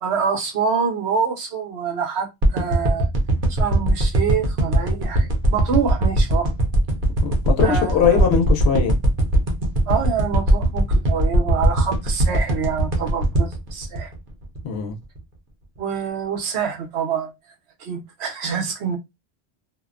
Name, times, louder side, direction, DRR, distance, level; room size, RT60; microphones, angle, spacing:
voice 1, 0.0-3.1 3.5-6.5 7.6-8.2 9.9-14.1 15.8-17.3 17.8-19.0, right 6 dB, 85° right, 1.1 m, -26 dB
sound 1, 2.4-14.7 15.2-15.3, right 1 dB, 55° right, 0.8 m, -19 dB
voice 2, 7.2-9.0 14.6-15.0, left 7 dB, 80° left, 0.9 m, -21 dB
2.6 x 2.1 x 2.4 m
omnidirectional pair, 1.1 m